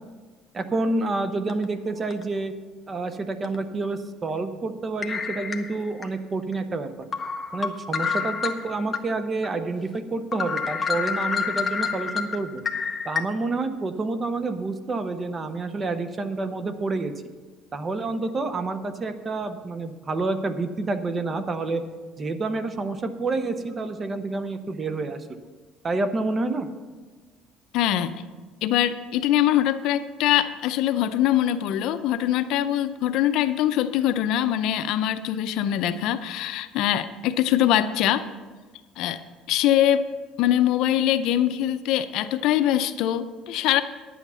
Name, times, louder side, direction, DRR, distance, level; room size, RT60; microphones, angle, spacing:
voice 1, 0.5-2.5 2.9-6.9 7.5-12.6 13.0-17.1 17.7-21.8 22.2-25.4 25.8-26.7, right 3 dB, 25° right, 10 dB, 0.7 m, -28 dB
sound 1, 1.5-1.6 2.1-2.2 3.4-3.6 5.0-6.1 6.5-6.6 7.1-9.0 9.4-9.5 9.9-10.0 10.3-13.2, left 5 dB, 20° left, 0.8 m, -28 dB
voice 2, 27.7-28.2 28.6-38.3 39.0-39.2 39.5-40.1 40.4-43.8, left 11 dB, 65° left, 11 dB, 0.5 m, -23 dB
10.5 x 8.4 x 5.5 m, 1.4 s
cardioid pair, 140°, 0 cm